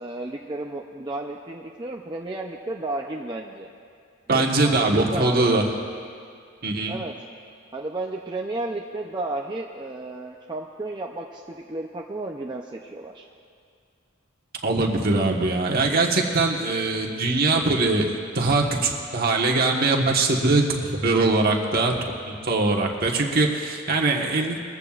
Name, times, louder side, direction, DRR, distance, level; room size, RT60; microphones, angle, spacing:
voice 1, 0.0-3.7 4.3-5.6 6.9-7.1 7.7-13.3, right 2 dB, 20° right, -1 dB, 0.6 m, -33 dB
voice 2, 4.3-5.6 6.6-7.0 14.6-21.9 22.2-24.6, right 3 dB, 50° right, 0 dB, 1.4 m, -22 dB
22.0 x 14.5 x 2.5 m, 2.3 s
head